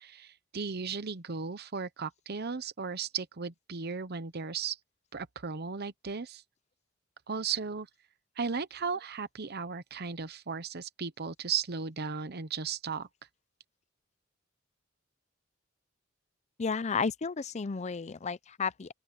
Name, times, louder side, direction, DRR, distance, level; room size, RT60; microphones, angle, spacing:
voice 1, 0.0-4.8 5.1-6.4 7.3-7.9 8.4-13.1, right 6 dB, 55° right, 0.9 m, -36 dB
voice 2, 16.6-18.9, left 5 dB, 35° left, 0.5 m, -32 dB
open air
head